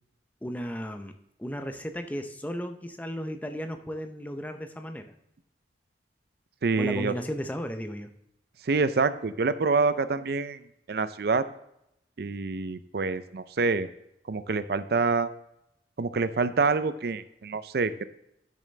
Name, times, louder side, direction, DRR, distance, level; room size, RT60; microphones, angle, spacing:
voice 1, 0.4-5.1 6.8-8.1, equal, 10° left, 7 dB, 0.5 m, -35 dB
voice 2, 6.6-7.1 8.6-10.6 10.9-11.4 12.2-13.9 14.3-15.3 16.0-18.1, right 4 dB, 55° right, 13 dB, 0.4 m, -26 dB
12.0 x 6.7 x 3.2 m, 0.81 s
head